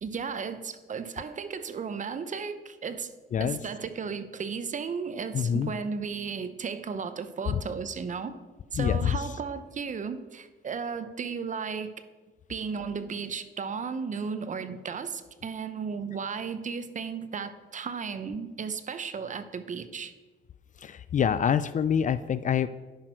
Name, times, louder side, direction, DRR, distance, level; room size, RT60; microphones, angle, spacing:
voice 1, 0.0-3.1 3.4-8.3 8.7-11.9 12.5-20.1, right 5 dB, 40° right, 11 dB, 0.7 m, -34 dB
voice 2, 5.3-5.7 7.5-7.6 8.8-9.2 20.8-22.7, left 8 dB, 40° left, 15 dB, 0.4 m, -26 dB
10.5 x 6.0 x 4.5 m, 1.3 s
cardioid pair, 90°, 20 cm